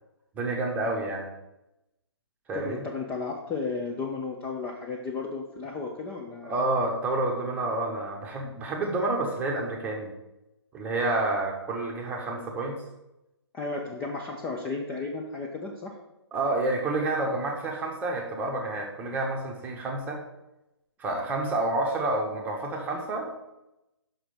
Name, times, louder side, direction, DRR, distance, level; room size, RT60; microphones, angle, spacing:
voice 1, 0.3-1.3 2.5-2.9 6.4-10.1 10.7-12.8 16.3-20.2 21.0-23.5, right 2 dB, 10° right, 0 dB, 1.0 m, -29 dB
voice 2, 2.5-6.6 13.5-15.9, left 4 dB, 10° left, 0 dB, 0.5 m, -34 dB
6.0 x 5.0 x 5.6 m, 0.93 s
figure-of-eight pair, 145°, 14 cm